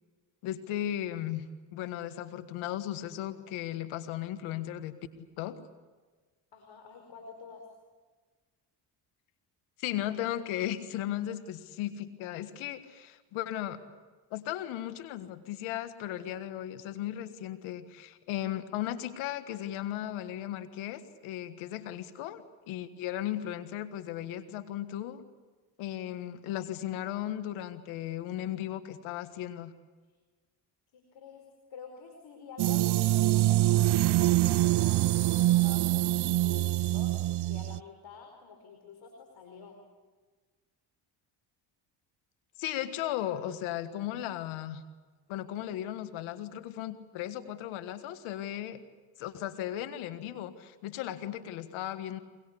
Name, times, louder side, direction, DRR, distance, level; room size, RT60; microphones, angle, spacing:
voice 1, 0.4-5.0 5.4-5.6 9.8-13.8 14.3-25.2 25.8-29.7 42.6-44.8 45.3-48.8 49.2-52.2, left 12 dB, 90° left, 11 dB, 1.6 m, -36 dB
voice 2, 6.5-7.7 30.9-31.4 31.7-39.8, left 5 dB, 65° left, 4 dB, 4.8 m, -49 dB
sound 1, 32.6-37.8, right 15 dB, 55° right, 0.7 m, -25 dB
24.5 x 23.0 x 8.4 m, 1.4 s
supercardioid pair, 65°, 47 cm